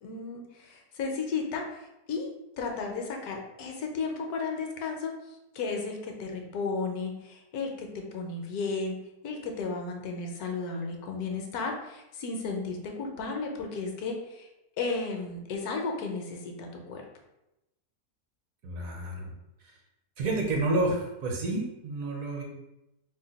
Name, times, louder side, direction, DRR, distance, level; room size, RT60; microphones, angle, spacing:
voice 1, 0.0-2.3 2.6-5.1 5.5-8.9 9.2-14.5 14.8-17.0, left 4 dB, 75° left, 2 dB, 1.1 m, -34 dB
voice 2, 18.6-19.3 20.2-22.4, right 2 dB, 65° right, 0 dB, 1.1 m, -29 dB
2.9 x 2.2 x 3.9 m, 0.92 s
omnidirectional pair, 1.6 m